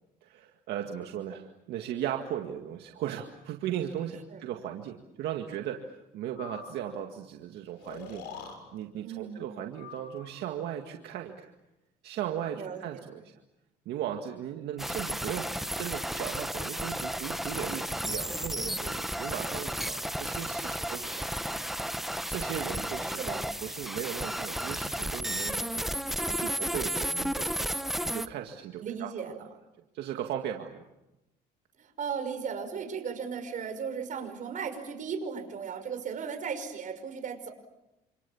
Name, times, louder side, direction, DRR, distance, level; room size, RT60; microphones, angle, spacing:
voice 1, 0.2-11.5 12.0-13.3 13.9-21.4 22.3-23.3 23.6-29.2 29.9-30.8, right 10 dB, 80° right, 3 dB, 2.0 m, -37 dB
Breathing, 6.4-7.0 7.8-8.6 9.7-10.6, left 6 dB, 90° left, 6.8 m, -45 dB
voice 2, 9.0-9.4 12.5-13.0 23.2-23.4 28.8-29.4 31.8-37.5, right 6 dB, 50° right, 7 dB, 5.6 m, -36 dB
sound 1, 14.8-28.3, equal, ahead, 1.0 m, -33 dB
28.5 x 27.5 x 7.2 m, 0.94 s
cardioid pair, 110°, 17 cm